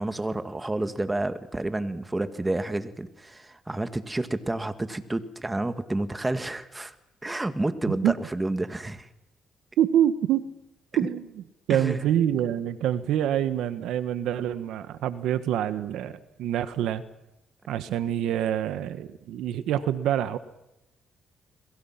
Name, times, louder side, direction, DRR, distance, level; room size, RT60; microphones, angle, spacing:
voice 1, 0.0-7.0 7.2-9.1 11.7-12.1, right 2 dB, 15° right, 10 dB, 1.9 m, -30 dB
voice 2, 9.8-10.5 11.0-17.0 17.7-20.4, right 10 dB, 85° right, 12 dB, 1.4 m, -26 dB
29.5 x 22.5 x 6.0 m, 0.87 s
cardioid pair, 90°, 0 cm